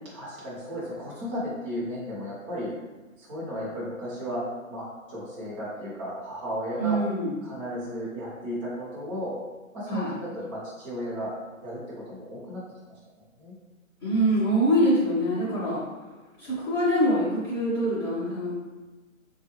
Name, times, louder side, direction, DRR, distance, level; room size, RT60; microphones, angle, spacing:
voice 1, 0.1-2.7 3.2-4.4 4.7-7.0 7.4-9.3 9.7-11.3 11.6-12.6 13.4-13.5, equal, 20° right, -8 dB, 0.8 m, -34 dB
voice 2, 6.8-7.3 9.9-10.1 14.0-15.8 16.4-18.5, equal, 20° left, -13 dB, 0.7 m, -24 dB
3.6 x 2.4 x 3.0 m, 1.2 s
figure-of-eight pair, 145°, 41 cm